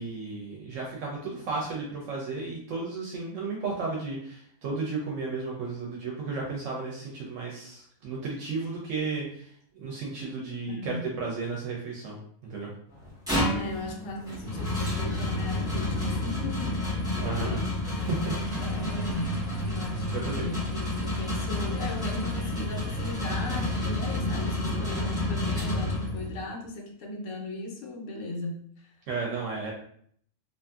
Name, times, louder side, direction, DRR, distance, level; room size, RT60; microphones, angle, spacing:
voice 1, 0.0-12.2 12.5-12.7 17.2-17.6 18.0-18.3 19.0-19.1 20.1-20.7 29.1-29.7, right 4 dB, 75° right, -2 dB, 0.9 m, -34 dB
voice 2, 10.7-11.1 13.5-16.9 17.4-17.8 18.3-28.9, left 2 dB, 80° left, 1 dB, 1.0 m, -38 dB
sound 1, 12.9-26.4, left 1 dB, 5° right, 1.0 m, -30 dB
2.5 x 2.5 x 2.3 m, 0.62 s
omnidirectional pair, 1.3 m